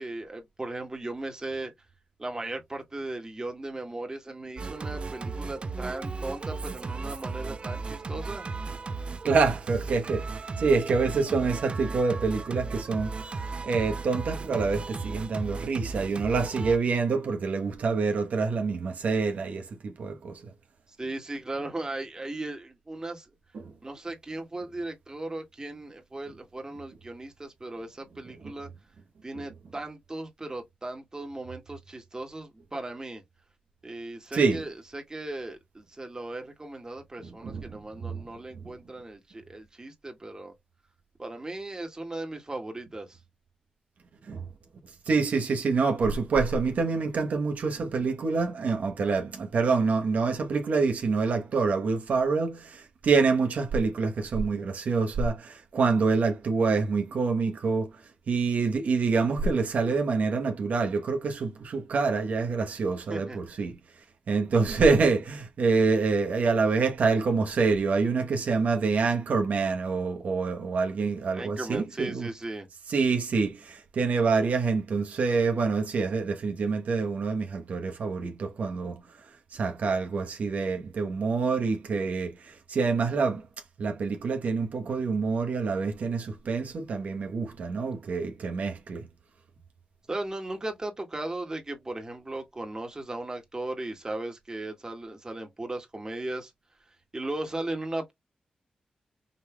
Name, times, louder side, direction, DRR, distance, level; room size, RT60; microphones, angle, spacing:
voice 1, 0.0-1.7 2.2-8.5 21.0-23.3 23.8-28.7 29.2-33.2 33.8-40.5 41.2-43.2 63.1-63.4 71.3-72.7 90.1-96.5 97.1-98.1, right 2 dB, 25° right, 1.7 m, -37 dB
Singing, 4.6-16.8, right 4 dB, 45° right, 0.7 m, -35 dB
voice 2, 9.2-20.5 23.5-23.7 28.4-28.5 29.3-29.5 34.3-34.6 37.2-38.2 44.2-44.5 45.0-72.3 72.9-83.5 83.8-89.1, right 4 dB, 75° right, 1.0 m, -27 dB
5.5 x 3.1 x 2.2 m
cardioid pair, 70°, 3 cm